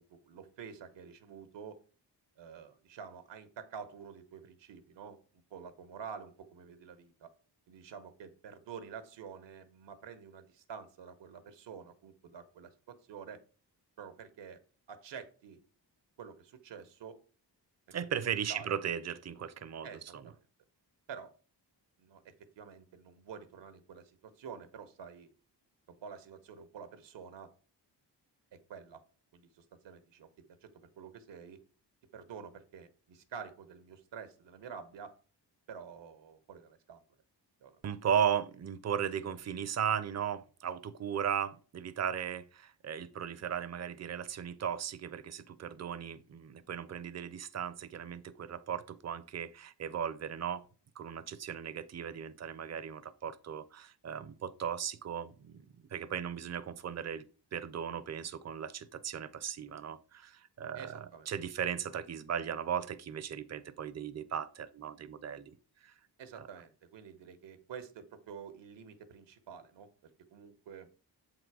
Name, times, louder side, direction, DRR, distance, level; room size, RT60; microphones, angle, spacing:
voice 1, 0.0-1.8 2.4-5.2 5.5-7.3 7.7-13.4 14.0-14.6 14.9-15.6 16.2-17.2 18.5-18.8 19.8-20.4 21.1-21.3 22.0-25.3 26.0-27.5 28.7-29.0 29.3-30.3 30.6-30.7 31.0-31.6 32.1-35.1 35.7-37.0 37.6-37.8 60.7-61.3 66.2-70.9, right 6 dB, 90° right, 0.9 m, -48 dB
voice 2, 17.9-19.9 20.1-20.2 37.8-50.6 51.0-55.6 55.9-57.2 57.5-65.5 65.8-65.9 66.4-66.5, right 8 dB, 40° right, 0.5 m, -36 dB
7.5 x 3.8 x 4.7 m
wide cardioid pair, 150°, 42 cm